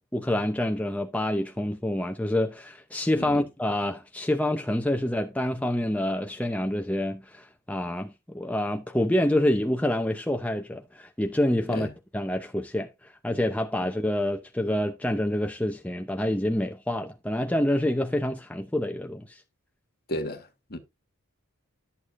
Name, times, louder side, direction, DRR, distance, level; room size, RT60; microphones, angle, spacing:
voice 1, 0.1-11.9 12.1-19.4, left 1 dB, 5° left, 0.7 m, -27 dB
voice 2, 20.1-20.8, left 1 dB, 45° left, 1.8 m, -34 dB
11.5 x 8.1 x 2.6 m
head